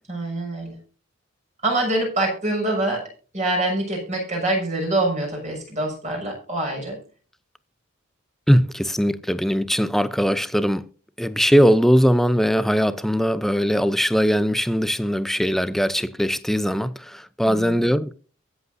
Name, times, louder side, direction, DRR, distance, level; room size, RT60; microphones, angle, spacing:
voice 1, 0.1-0.8 1.6-3.0 3.3-7.0 17.4-17.8, right 2 dB, 35° right, 6.3 m, -25 dB
voice 2, 8.5-10.8 11.2-18.1, equal, ahead, 0.6 m, -20 dB
23.0 x 8.1 x 2.7 m
head